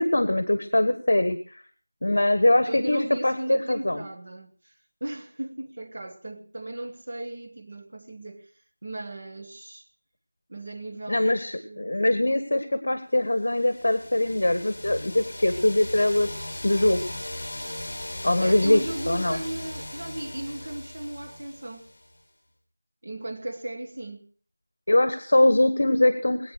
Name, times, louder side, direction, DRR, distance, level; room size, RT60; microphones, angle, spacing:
voice 1, 0.0-1.6 2.0-4.0 11.1-17.0 18.2-19.4 24.9-26.5, left 1 dB, 50° left, 1.6 m, -22 dB
voice 2, 2.6-4.7 5.0-8.5 8.8-9.9 10.5-11.9 18.0-21.9 23.0-24.3, right 1 dB, 35° right, 1.4 m, -36 dB
sound 1, 13.5-22.2, left 1 dB, 35° left, 2.8 m, -38 dB
21.5 x 9.2 x 6.5 m
figure-of-eight pair, 180°, 0 cm